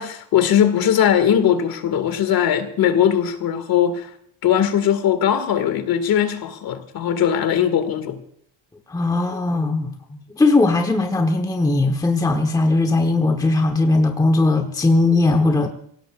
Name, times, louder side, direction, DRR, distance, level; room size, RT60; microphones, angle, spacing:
voice 1, 0.0-4.1 4.4-8.2, left 9 dB, 45° left, 2.0 m, -19 dB
voice 2, 8.9-9.9 10.4-15.7, left 2 dB, 10° left, 1.1 m, -18 dB
27.0 x 17.0 x 2.4 m
cardioid pair, 155°, 48 cm